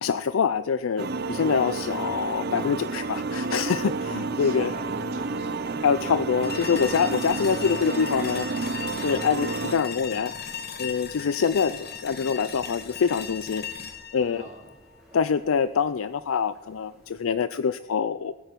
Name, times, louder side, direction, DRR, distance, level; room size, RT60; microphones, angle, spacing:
voice 1, 0.0-4.7 5.8-8.7 9.0-10.3 10.8-13.6 14.1-14.4 15.1-18.3, left 6 dB, 80° left, 13 dB, 0.4 m, -25 dB
sound 1, 1.0-9.7, right 3 dB, 50° right, 0.6 m, -30 dB
sound 2, 3.3-17.3, right 1 dB, ahead, 3.9 m, -54 dB
voice 2, 4.4-5.8 11.7-11.9 14.3-14.7, right 1 dB, 30° right, -3 dB, 3.5 m, -43 dB
sound 3, 6.4-15.5, left 7 dB, 45° left, 1.2 m, -37 dB
20.0 x 9.1 x 5.2 m, 1.1 s
head